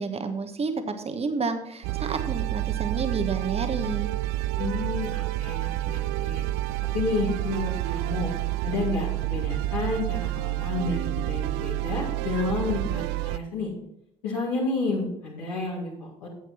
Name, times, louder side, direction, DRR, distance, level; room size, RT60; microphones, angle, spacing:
voice 1, 0.0-4.1, right 4 dB, 30° right, 8 dB, 1.3 m, -30 dB
sound 1, 1.8-13.4, right 17 dB, 65° right, 0.4 m, -29 dB
voice 2, 4.6-6.5 6.9-8.3 8.6-13.7 14.2-16.3, left 3 dB, 75° left, -6 dB, 2.3 m, -30 dB
9.6 x 8.0 x 4.4 m, 0.82 s
figure-of-eight pair, 50°, 19 cm